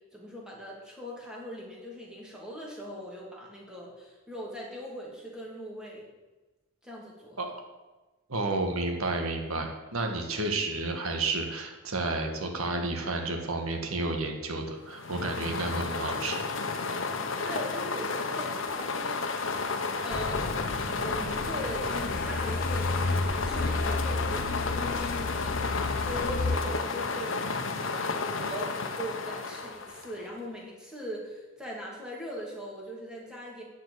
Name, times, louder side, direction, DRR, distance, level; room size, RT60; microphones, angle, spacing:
voice 1, 0.1-6.0 6.8-7.4 17.4-19.5 20.0-20.5 21.0-33.6, equal, 5° right, -4 dB, 2.6 m, -40 dB
voice 2, 8.3-16.4, right 2 dB, 90° right, 3 dB, 1.6 m, -31 dB
sound 1, 14.9-30.3, left 4 dB, 60° left, 1.0 m, -32 dB
Truck, 20.1-26.6, left 3 dB, 45° left, 0.5 m, -32 dB
10.5 x 5.9 x 8.6 m, 1.2 s
head